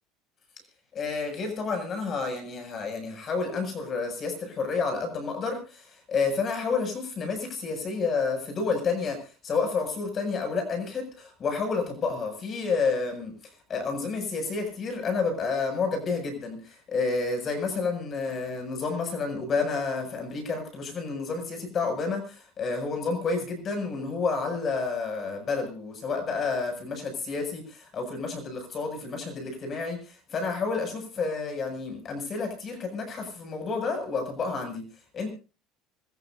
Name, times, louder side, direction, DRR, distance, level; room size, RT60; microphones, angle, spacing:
voice 1, 0.9-9.2 9.4-13.3 13.7-34.8 35.1-35.3, left 4 dB, 35° left, 6 dB, 7.6 m, -30 dB
26.0 x 15.0 x 2.8 m, 0.34 s
supercardioid pair, 125°, 0 cm